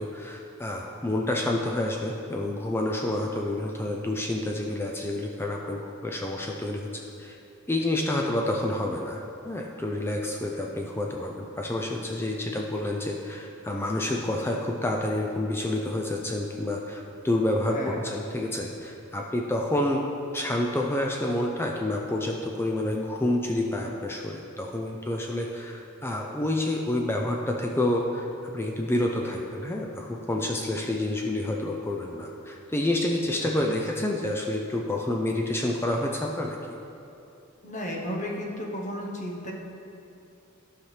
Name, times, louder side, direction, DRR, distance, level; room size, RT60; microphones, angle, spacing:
voice 1, 0.0-6.9 7.2-7.4 7.7-20.1 20.3-36.6, left 1 dB, 10° left, 0 dB, 0.4 m, -28 dB
voice 2, 17.7-18.0 33.4-33.7 37.6-39.5, equal, 35° left, -1 dB, 1.0 m, -33 dB
12.0 x 5.8 x 3.3 m, 2.8 s
head